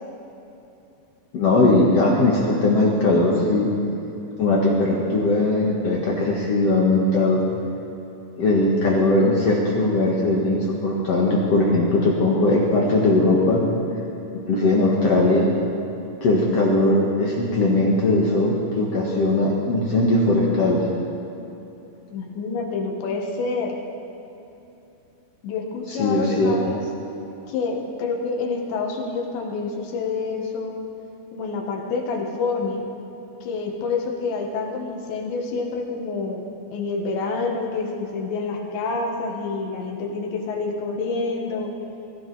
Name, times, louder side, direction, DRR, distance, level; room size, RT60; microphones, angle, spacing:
voice 1, 1.3-3.7 4.4-7.4 8.4-13.6 14.5-15.5 16.2-20.8 25.9-26.6, left 2 dB, 50° left, -3 dB, 2.0 m, -19 dB
voice 2, 22.1-23.8 25.4-26.8 27.5-30.7 31.3-32.9 33.4-36.5 36.7-41.7, left 4 dB, 90° left, 1 dB, 3.9 m, -27 dB
22.0 x 15.0 x 4.2 m, 3.0 s
omnidirectional pair, 4.9 m